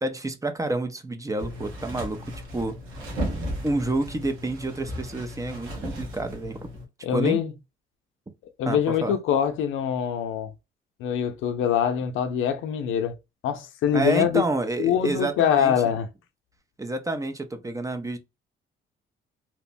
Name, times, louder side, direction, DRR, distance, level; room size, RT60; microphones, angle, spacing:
voice 1, 0.0-2.8 3.6-6.7 7.1-7.4 8.7-9.2 13.9-15.7 16.8-18.2, right 2 dB, 15° right, 0.5 m, -29 dB
sound 1, 1.4-6.8, equal, 90° right, 1.1 m, -35 dB
voice 2, 7.0-7.5 8.6-10.5 11.0-13.1 13.4-14.4 14.8-16.1, left 9 dB, 85° left, 0.5 m, -24 dB
2.9 x 2.1 x 2.5 m
cardioid pair, 90°, 20 cm